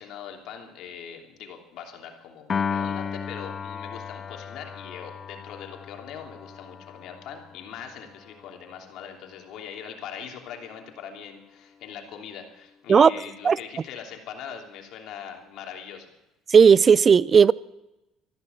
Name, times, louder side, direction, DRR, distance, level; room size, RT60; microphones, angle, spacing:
voice 1, 0.0-16.1, left 8 dB, 65° left, 3.0 m, -41 dB
Piano, 2.5-8.9, left 6 dB, 35° left, 0.5 m, -35 dB
voice 2, 16.5-17.5, right 6 dB, 35° right, 0.5 m, -14 dB
14.0 x 12.0 x 8.0 m
supercardioid pair, 85°, 0 cm